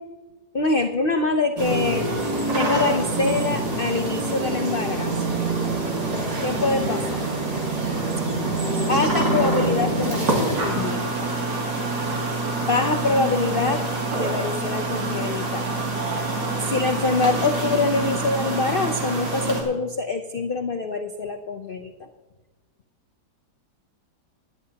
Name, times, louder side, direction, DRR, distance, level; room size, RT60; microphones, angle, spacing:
voice 1, 0.5-2.1 2.5-5.1 6.4-7.2 8.9-11.3 12.6-13.8 14.2-15.7 16.6-21.9, left 3 dB, 85° left, 6 dB, 0.4 m, -24 dB
sound 1, 1.6-19.6, right 2 dB, 80° right, 3.2 m, -26 dB
20.5 x 10.5 x 2.8 m, 1.2 s
omnidirectional pair, 1.9 m